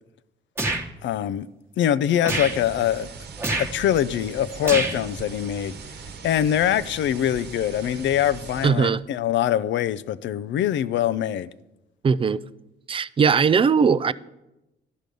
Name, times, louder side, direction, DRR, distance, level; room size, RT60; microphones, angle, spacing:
sound 1, 0.6-0.9 2.2-2.6 3.4-3.7 4.6-5.0, right 2 dB, 10° right, 1.2 m, -26 dB
voice 1, 1.0-1.5 1.8-3.1 3.6-5.7 6.2-11.5, left 10 dB, 70° left, 0.5 m, -23 dB
sound 2, 2.4-8.7, right 5 dB, 55° right, 1.1 m, -40 dB
voice 2, 8.6-9.0 12.0-12.4 12.9-14.1, right 6 dB, 25° right, 0.4 m, -19 dB
11.5 x 6.3 x 5.3 m
cardioid pair, 90°, 20 cm